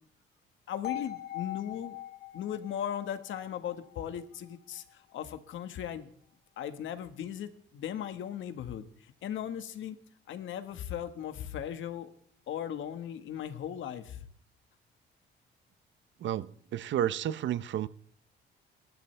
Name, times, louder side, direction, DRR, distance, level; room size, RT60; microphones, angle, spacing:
voice 1, 0.7-2.0 2.3-6.1 6.6-10.0 10.3-12.1 12.5-14.3, left 9 dB, 75° left, 1.5 m, -37 dB
sound 1, 0.8-4.8, left 14 dB, 55° left, 1.8 m, -42 dB
voice 2, 16.2-17.9, right 11 dB, 70° right, 0.7 m, -31 dB
30.0 x 11.5 x 3.4 m
cardioid pair, 90°, 20 cm